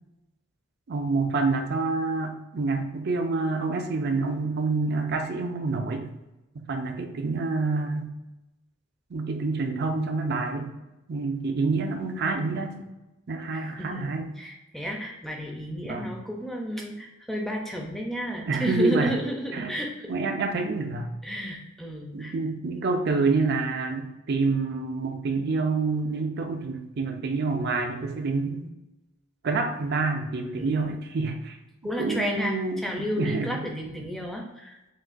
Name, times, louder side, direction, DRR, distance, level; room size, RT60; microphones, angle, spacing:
voice 1, 0.9-6.0 6.6-8.1 9.1-10.7 11.1-12.8 13.3-14.3 15.8-16.1 18.5-19.1 19.5-19.7 20.1-21.1 22.1-28.7 29.4-31.6 32.0-33.7, right 3 dB, 50° right, 5 dB, 0.5 m, -27 dB
voice 2, 13.5-20.1 21.2-22.3 30.6-30.9 31.8-34.8, equal, ahead, 0 dB, 0.5 m, -32 dB
6.0 x 2.4 x 2.5 m, 0.99 s
head